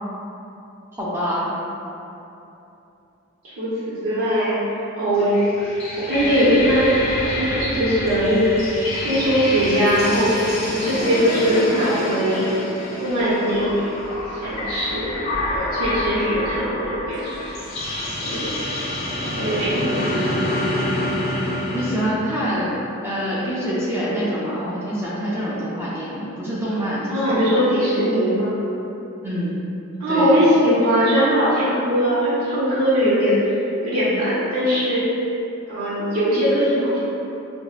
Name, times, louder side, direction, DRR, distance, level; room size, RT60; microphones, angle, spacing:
voice 1, 0.9-1.5 21.7-22.7 23.0-27.6 29.2-29.6 30.1-30.3, equal, 10° right, -8 dB, 0.4 m, -25 dB
voice 2, 3.6-4.6 5.0-5.3 6.0-6.9 7.2-8.5 8.9-10.3 10.7-12.5 13.0-13.8 14.4-15.2 15.4-17.3 18.2-18.6 19.4-20.0 27.1-28.5 30.0-33.4 33.8-35.0 35.7-37.0, equal, 80° right, -11 dB, 0.7 m, -20 dB
sound 1, 5.1-22.1, left 1 dB, 30° left, 0.7 m, -27 dB
5.2 x 2.0 x 2.3 m, 2.9 s
head